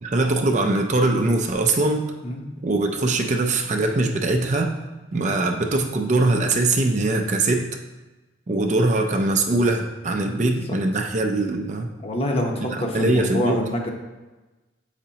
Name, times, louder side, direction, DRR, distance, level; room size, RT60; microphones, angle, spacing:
voice 1, 0.0-2.0 2.6-4.7 5.1-7.7 8.5-11.9 12.7-13.6, right 2 dB, 40° right, 4 dB, 0.5 m, -22 dB
voice 2, 10.2-10.8 12.0-13.9, left 1 dB, 30° left, 1 dB, 0.9 m, -27 dB
7.8 x 4.9 x 2.8 m, 1.2 s
head